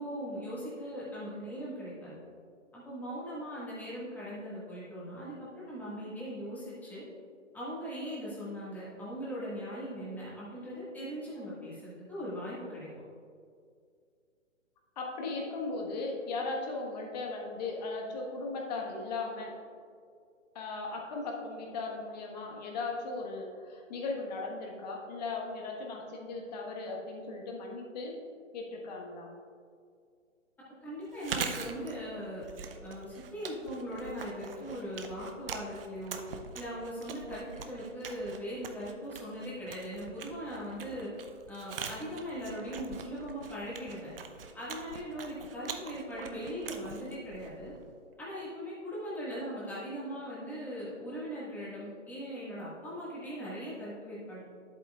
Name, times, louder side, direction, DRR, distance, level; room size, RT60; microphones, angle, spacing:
voice 1, 0.0-2.2 2.7-7.0 7.5-12.9 30.8-32.4 32.8-36.2 36.5-41.1 41.5-44.1 44.5-47.7 48.2-54.4, equal, 5° left, -8 dB, 1.7 m, -40 dB
voice 2, 15.0-19.5 20.5-28.2 28.5-29.3, left 3 dB, 35° left, 0 dB, 1.3 m, -37 dB
Chewing mastication, 31.1-47.9, right 6 dB, 50° right, 0.7 m, -43 dB
10.5 x 8.1 x 2.3 m, 2.3 s
hypercardioid pair, 145°, 38 cm